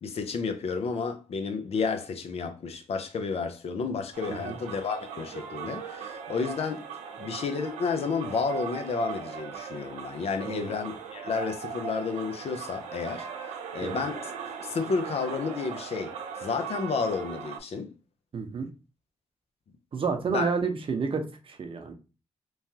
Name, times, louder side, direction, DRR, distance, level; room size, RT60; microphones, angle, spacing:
voice 1, 0.0-6.9 7.2-14.3 14.6-17.9 20.3-20.5, left 5 dB, 60° left, 0.6 m, -31 dB
sound 1, 4.1-17.6, right 6 dB, 80° right, 0.5 m, -39 dB
voice 2, 18.3-18.7 19.9-21.9, right 5 dB, 50° right, 0.7 m, -30 dB
3.1 x 2.2 x 2.8 m
supercardioid pair, 50°, 12 cm